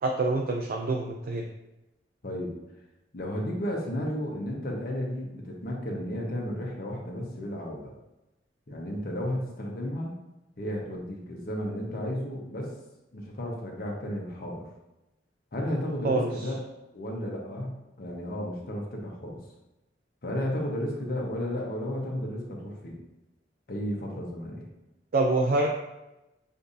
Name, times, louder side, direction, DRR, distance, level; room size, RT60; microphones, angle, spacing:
voice 1, 0.0-1.5 16.0-16.3 25.1-25.7, right 2 dB, 50° right, 1 dB, 0.4 m, -26 dB
voice 2, 2.2-2.5 3.1-7.9 8.7-10.2 10.6-12.7 13.1-14.7 15.5-16.6 16.9-17.7 18.0-19.4 20.2-23.0 23.7-24.7, equal, 55° left, -1 dB, 0.9 m, -33 dB
6.6 x 2.7 x 2.6 m, 0.97 s
head